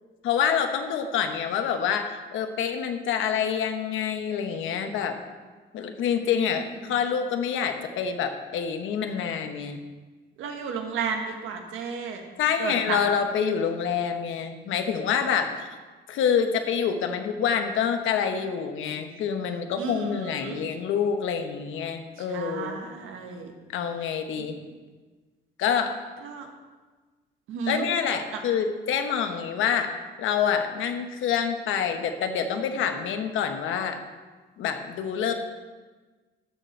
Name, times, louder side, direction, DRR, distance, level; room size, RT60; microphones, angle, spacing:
voice 1, 0.2-5.2 5.7-9.8 12.4-15.7 16.1-22.8 23.7-24.6 25.6-25.9 27.7-29.9 30.2-34.0 34.6-35.3, left 7 dB, 85° left, 6 dB, 1.1 m, -27 dB
voice 2, 10.4-12.2 12.6-13.0 19.8-20.6 22.3-23.5 24.4-24.5 26.2-26.5 27.5-27.9, right 6 dB, 85° right, 3 dB, 1.5 m, -33 dB
13.0 x 6.7 x 4.5 m, 1.3 s
cardioid pair, 90°, 20 cm